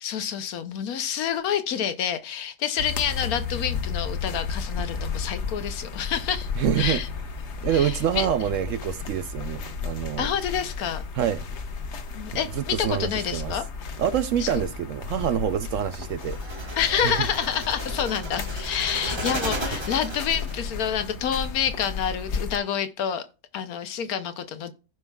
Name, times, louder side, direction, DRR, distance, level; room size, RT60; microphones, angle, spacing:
voice 1, 0.0-6.5 6.8-7.1 7.7-8.3 10.2-11.0 12.2-13.6 14.4-14.5 16.8-23.2 23.5-24.7, left 8 dB, 75° left, 1.2 m, -28 dB
sound 1, 2.8-22.6, left 5 dB, 55° left, 1.1 m, -33 dB
voice 2, 6.6-7.0 7.6-10.3 11.2-11.4 12.5-13.5 14.0-17.2, right 10 dB, 70° right, 0.8 m, -26 dB
sound 2, 16.2-20.8, right 1 dB, 20° right, 1.1 m, -34 dB
15.5 x 5.4 x 2.3 m
omnidirectional pair, 1.6 m